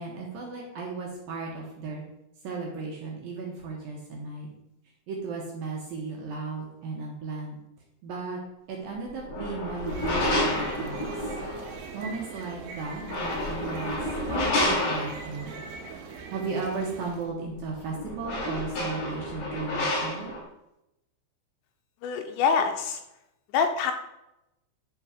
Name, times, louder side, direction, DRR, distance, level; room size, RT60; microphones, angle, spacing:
voice 1, 0.0-2.0 2.4-4.5 5.1-7.6 8.0-8.4 8.7-11.3 11.9-15.6 16.3-20.3, right 4 dB, 70° right, -2 dB, 2.4 m, -35 dB
sound 1, 9.1-11.8 12.9-15.6 17.5-17.6 17.9-20.4, left 1 dB, 50° left, 4.5 m, -29 dB
sound 2, 9.7-17.3, right 5 dB, 85° right, 3.6 m, -41 dB
voice 2, 22.0-23.0 23.5-23.9, left 6 dB, 80° left, 6 dB, 2.7 m, -25 dB
11.0 x 4.5 x 4.9 m, 0.87 s
omnidirectional pair, 5.4 m